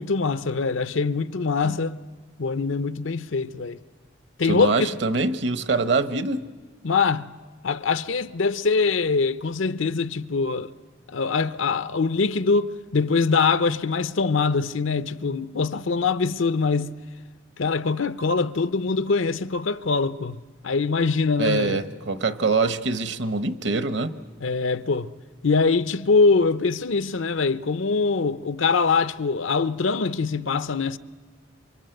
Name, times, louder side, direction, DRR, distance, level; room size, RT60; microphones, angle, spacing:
voice 1, 0.0-2.0 2.4-3.8 4.4-5.0 6.8-7.3 7.6-10.7 11.1-16.9 17.6-21.8 24.4-25.1 25.4-31.0, left 4 dB, 80° left, 0.7 m, -23 dB
voice 2, 4.5-6.5 21.4-24.1, right 3 dB, 65° right, 1.1 m, -24 dB
27.5 x 25.0 x 7.9 m
head